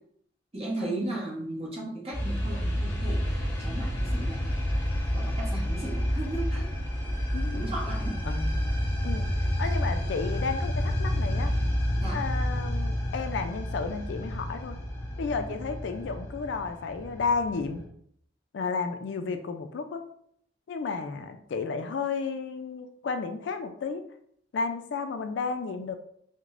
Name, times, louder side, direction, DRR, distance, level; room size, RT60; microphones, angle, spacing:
voice 1, 0.5-4.6 5.1-6.7 7.5-8.2 12.0-12.2, right 1 dB, 30° right, -4 dB, 1.0 m, -36 dB
sound 1, 2.1-17.9, equal, 10° left, 0.6 m, -29 dB
voice 2, 7.3-7.7 8.2-8.5 9.0-9.3 9.6-11.5 12.1-14.8 15.2-17.8 18.5-20.0 20.7-24.0 24.5-26.0, left 4 dB, 65° left, 8 dB, 0.3 m, -32 dB
4.7 x 2.1 x 2.5 m, 0.67 s
head